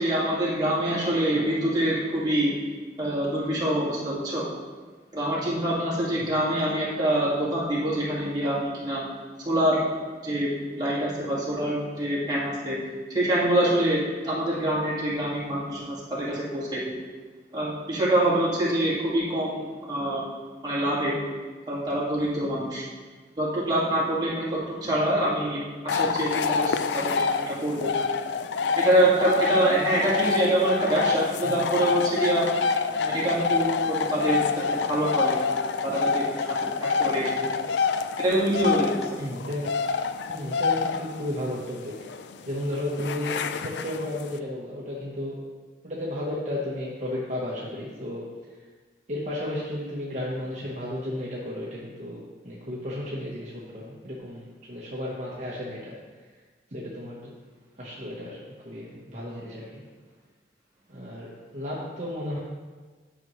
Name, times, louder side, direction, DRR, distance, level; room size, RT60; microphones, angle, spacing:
voice 1, 0.0-2.5 3.0-4.5 5.1-9.0 9.5-9.8 10.2-12.8 13.1-17.0 17.5-20.2 20.6-21.2 21.7-22.8 23.4-27.9 28.6-32.4 32.9-34.4 34.7-35.3 35.7-37.3 38.2-39.1, right 1 dB, 25° right, -7 dB, 1.9 m, -25 dB
sound 1, 25.9-44.4, left 5 dB, 75° left, 0.4 m, -27 dB
voice 2, 39.2-39.7 40.3-41.9 42.5-45.4 45.8-48.2 49.1-52.2 52.4-55.9 56.7-57.3 57.8-59.8 60.9-62.4, left 1 dB, 40° right, -6 dB, 1.1 m, -33 dB
10.5 x 6.0 x 3.1 m, 1.4 s
head